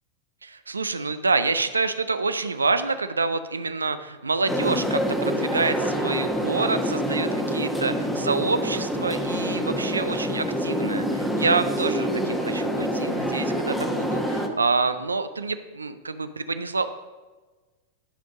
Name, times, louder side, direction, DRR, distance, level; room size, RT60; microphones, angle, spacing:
voice 1, 0.4-16.9, right 4 dB, 75° right, 11 dB, 0.5 m, -27 dB
sound 1, 4.5-14.5, equal, 5° left, 1.1 m, -26 dB
11.5 x 5.2 x 5.2 m, 1.3 s
figure-of-eight pair, 90°, 0 cm